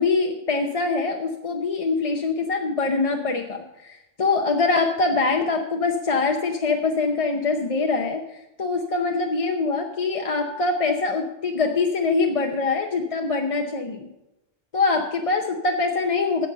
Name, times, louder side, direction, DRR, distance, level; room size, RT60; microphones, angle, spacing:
voice 1, 0.0-14.1 14.7-16.5, left 3 dB, 35° left, 2 dB, 0.7 m, -24 dB
15.5 x 5.4 x 6.6 m, 0.95 s
omnidirectional pair, 1.2 m